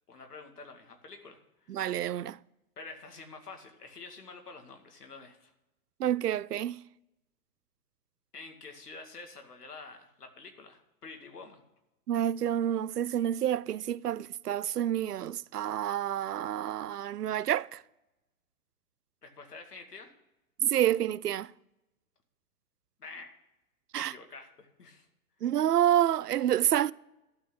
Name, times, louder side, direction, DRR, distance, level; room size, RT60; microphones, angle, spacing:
voice 1, 0.1-1.8 2.8-5.5 8.3-11.6 19.2-20.1 23.0-23.3 23.9-25.1, left 4 dB, 85° left, 2.3 m, -48 dB
voice 2, 1.7-2.4 6.0-6.8 12.1-17.8 20.6-21.5 23.9-24.1 25.4-26.9, right 11 dB, 90° right, 0.5 m, -28 dB
12.0 x 6.3 x 8.5 m
hypercardioid pair, 120°, 45 cm